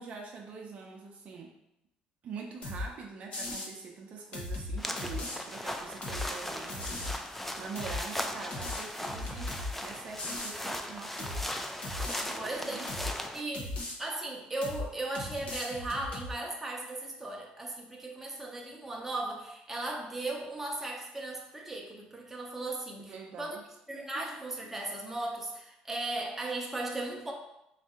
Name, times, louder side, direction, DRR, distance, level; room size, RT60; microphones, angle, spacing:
voice 1, 0.0-1.5 2.2-11.4 12.1-13.3 23.0-23.6 24.1-24.3, right 5 dB, 50° right, 1 dB, 0.5 m, -45 dB
sound 1, 2.6-2.9 3.3-3.7 4.3-5.4 6.0-6.3 6.7-7.2 7.7-8.0 8.5-9.7 10.2-10.6 11.2-11.5 11.8-12.2 12.9-13.1 13.5-14.0 14.6-14.9 15.1-16.3, left 2 dB, 45° left, 0.8 m, -37 dB
sound 2, 4.8-13.4, left 1 dB, 5° left, 0.3 m, -38 dB
voice 2, 12.3-13.1 13.3-13.7 14.0-23.6 23.9-27.3, right 2 dB, 10° right, -1 dB, 0.7 m, -37 dB
4.0 x 2.6 x 3.6 m, 0.86 s
cardioid pair, 115°, 3 cm